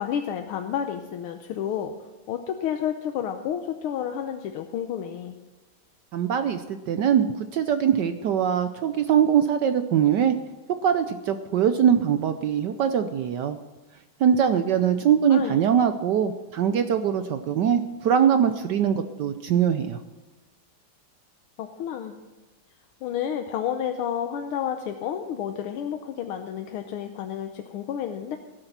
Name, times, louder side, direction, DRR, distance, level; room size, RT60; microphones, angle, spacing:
voice 1, 0.0-1.9 2.3-5.3 15.3-15.6 21.6-22.2 23.0-28.4, left 9 dB, 80° left, 6 dB, 1.6 m, -30 dB
voice 2, 6.1-10.3 10.7-13.6 14.2-20.0, right 8 dB, 70° right, 9 dB, 1.1 m, -22 dB
17.0 x 7.9 x 5.9 m, 1.2 s
omnidirectional pair, 2.4 m